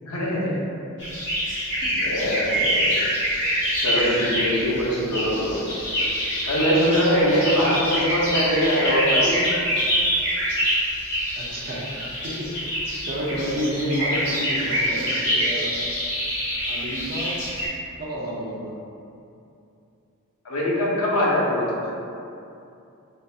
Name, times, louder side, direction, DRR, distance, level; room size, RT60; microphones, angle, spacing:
voice 1, 0.1-0.5 2.0-2.8 3.8-5.7 6.5-9.7 20.4-21.8, equal, 70° left, -5 dB, 0.7 m, -22 dB
sound 1, 1.0-17.7, equal, 50° left, 1.3 m, -25 dB
voice 2, 11.4-11.9 12.2-15.8 16.7-17.4 18.0-18.8, equal, 40° right, -4 dB, 0.5 m, -30 dB
3.9 x 2.6 x 2.3 m, 2.7 s
head